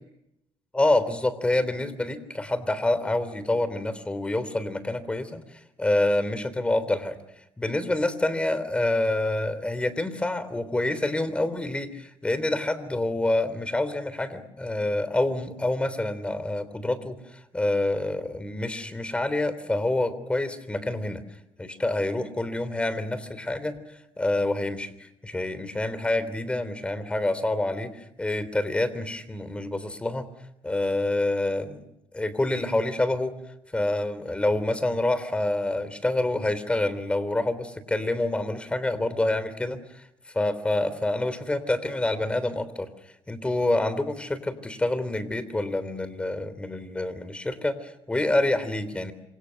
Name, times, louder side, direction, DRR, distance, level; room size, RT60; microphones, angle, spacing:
voice 1, 0.7-5.4 5.8-7.2 7.6-21.2 21.6-23.8 24.2-24.9 25.2-30.3 30.6-31.8 32.1-33.3 33.7-40.0 40.3-42.9 43.3-49.1, left 2 dB, 10° left, 13 dB, 3.4 m, -27 dB
27.5 x 26.5 x 6.5 m, 0.83 s
cardioid pair, 125°, 10 cm